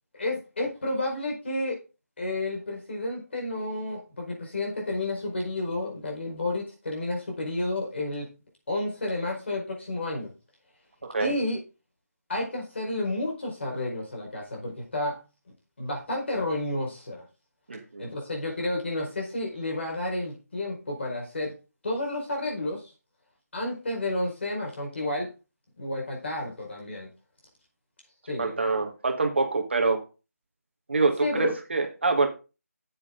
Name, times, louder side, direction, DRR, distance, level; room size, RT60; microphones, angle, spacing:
voice 1, 0.1-1.8 2.2-8.3 8.7-10.3 11.2-11.6 12.3-15.2 15.8-17.2 18.0-21.6 21.8-22.9 23.5-25.3 25.8-27.1 28.3-28.6 31.2-31.5, left 2 dB, 45° left, 0 dB, 4.7 m, -31 dB
voice 2, 17.7-18.0 28.4-30.0 30.9-32.3, right 3 dB, 45° right, 5 dB, 1.6 m, -25 dB
9.7 x 7.4 x 3.8 m, 0.31 s
figure-of-eight pair, 175°, 9 cm